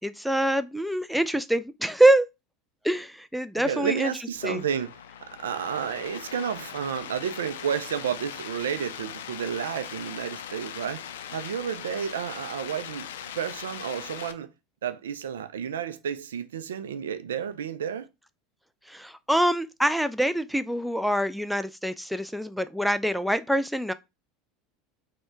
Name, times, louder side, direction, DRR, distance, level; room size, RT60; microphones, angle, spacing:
voice 1, 0.0-2.3 2.8-4.1 4.4-4.6 18.9-23.9, right 1 dB, ahead, 0.3 m, -25 dB
voice 2, 3.5-4.9 5.4-14.5 14.8-18.1, right 8 dB, 75° right, 0.4 m, -31 dB
sound 1, 4.3-14.3, left 9 dB, 70° left, 0.4 m, -40 dB
4.2 x 2.2 x 4.4 m
figure-of-eight pair, 75°, 0 cm